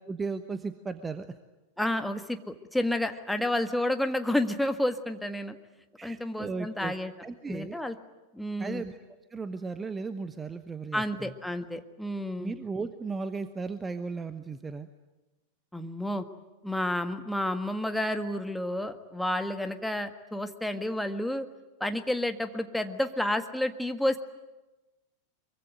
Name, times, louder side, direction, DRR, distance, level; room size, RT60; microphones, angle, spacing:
voice 1, 0.1-1.3 6.0-6.9 7.2-7.8 8.6-9.0 9.3-11.3 12.4-14.9, right 4 dB, 15° right, 11 dB, 1.1 m, -35 dB
voice 2, 1.8-5.5 6.0-7.1 7.5-7.9 8.3-8.8 10.9-12.5 15.7-16.2 16.6-21.5 21.8-24.2, left 1 dB, 5° left, 7 dB, 1.6 m, -30 dB
24.0 x 23.5 x 9.4 m, 1.1 s
figure-of-eight pair, 90°, 0 cm